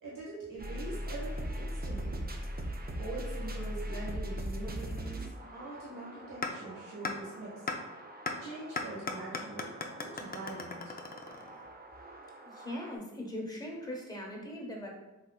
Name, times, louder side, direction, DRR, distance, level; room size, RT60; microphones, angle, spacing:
voice 1, 0.0-2.4 3.0-5.2 5.5-7.6 8.4-10.9, right 2 dB, 75° right, -7 dB, 1.2 m, -43 dB
sound 1, 0.6-13.0, equal, 30° right, 0.5 m, -41 dB
sound 2, 6.4-6.5 7.0-7.1 7.7-7.8 8.3-8.4 8.8-11.7, left 4 dB, 30° left, 0.4 m, -36 dB
voice 2, 12.4-14.9, left 1 dB, 10° left, -2 dB, 1.1 m, -40 dB
3.7 x 3.1 x 2.3 m, 1.0 s
cardioid pair, 45°, 33 cm